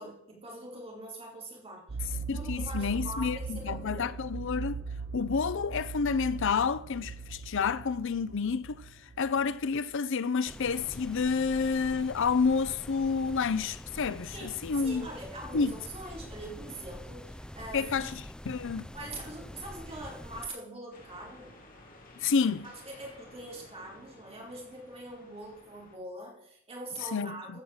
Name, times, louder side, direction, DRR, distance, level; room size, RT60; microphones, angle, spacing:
voice 1, 0.0-4.1 14.3-18.1 18.9-21.6 22.6-27.6, right 1 dB, 30° right, 4.8 m, -43 dB
sound 1, 1.9-10.0, right 5 dB, 50° right, 0.6 m, -39 dB
voice 2, 2.3-4.8 5.1-15.1 15.5-15.7 17.7-18.9 22.2-22.7 27.1-27.4, left 5 dB, 65° left, 0.6 m, -29 dB
sound 2, 10.5-20.5, equal, 5° left, 0.4 m, -45 dB
sound 3, 20.9-26.0, left 1 dB, 45° left, 3.0 m, -54 dB
15.0 x 6.3 x 7.3 m
head